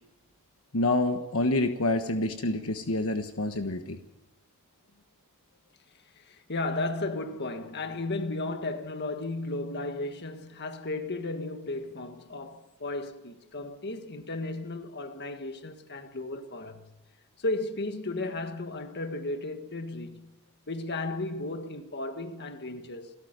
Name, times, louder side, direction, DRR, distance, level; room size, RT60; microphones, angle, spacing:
voice 1, 0.7-4.0, left 2 dB, 65° left, 1.3 m, -27 dB
voice 2, 6.2-16.9 17.4-20.3 20.7-23.1, left 2 dB, 50° left, 1.6 m, -34 dB
29.0 x 13.5 x 6.7 m
head